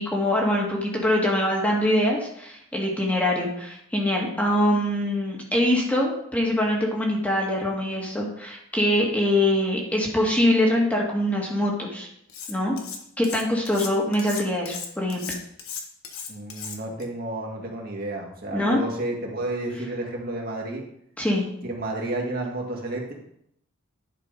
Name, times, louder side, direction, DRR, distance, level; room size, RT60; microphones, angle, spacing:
voice 1, 0.0-12.1 12.5-12.8 13.2-15.4 18.5-18.8 21.2-21.5, left 1 dB, 5° left, -2 dB, 1.6 m, -23 dB
Cutlery silverware, 12.3-13.0 13.2-17.0, left 6 dB, 80° left, 1.4 m, -36 dB
voice 2, 16.3-20.8 21.6-23.1, right 2 dB, 45° right, 0 dB, 1.9 m, -31 dB
11.0 x 4.9 x 5.1 m, 0.72 s
head